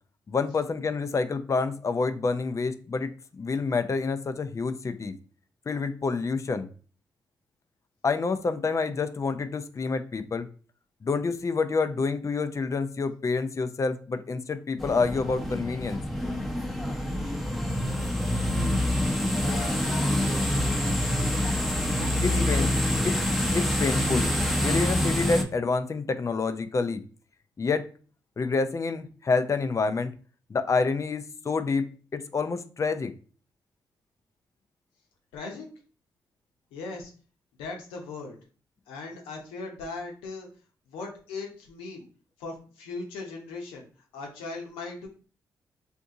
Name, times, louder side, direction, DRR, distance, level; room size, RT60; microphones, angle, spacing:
voice 1, 0.3-5.1 5.7-6.7 8.0-10.5 11.0-16.0 22.2-22.7 23.0-23.1 23.5-24.3 24.6-27.0 27.6-27.9 28.4-30.1 30.5-31.9 32.1-33.1, left 4 dB, 35° left, 9 dB, 0.5 m, -28 dB
sound 1, 14.8-25.4, left 1 dB, ahead, 0.8 m, -26 dB
voice 2, 19.4-19.8 22.0-22.7 35.3-35.7 36.7-37.1 37.5-38.4 38.9-40.5 40.9-42.1 42.4-43.8 44.1-45.1, left 3 dB, 90° left, 0 dB, 0.8 m, -38 dB
2.7 x 2.6 x 3.6 m, 0.39 s
hypercardioid pair, 45°, 9 cm